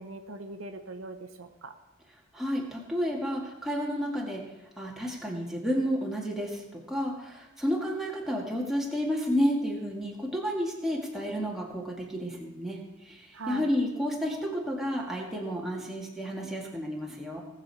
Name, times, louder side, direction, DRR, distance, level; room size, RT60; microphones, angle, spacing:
voice 1, 0.0-1.7 13.3-13.7, right 3 dB, 85° right, 7 dB, 1.0 m, -41 dB
voice 2, 2.3-4.5 4.8-17.4, equal, ahead, -2 dB, 1.9 m, -31 dB
18.5 x 7.3 x 4.7 m, 1.1 s
head